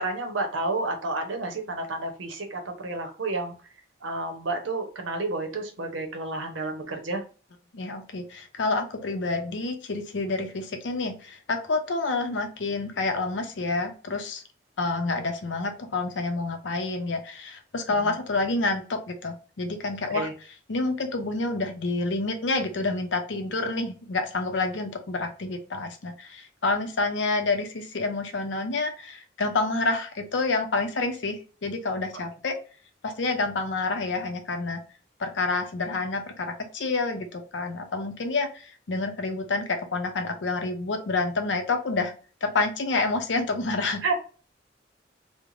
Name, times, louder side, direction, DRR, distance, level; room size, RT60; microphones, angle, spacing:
voice 1, 0.0-3.5 4.0-7.2 17.9-18.1 20.1-20.3 44.0-44.2, right 2 dB, 85° right, 4 dB, 0.7 m, -30 dB
voice 2, 7.7-14.4 14.8-20.3 20.7-32.6 33.0-34.8 35.2-42.1 42.4-44.0, left 3 dB, 75° left, 6 dB, 0.6 m, -28 dB
3.1 x 2.1 x 2.5 m, 0.37 s
head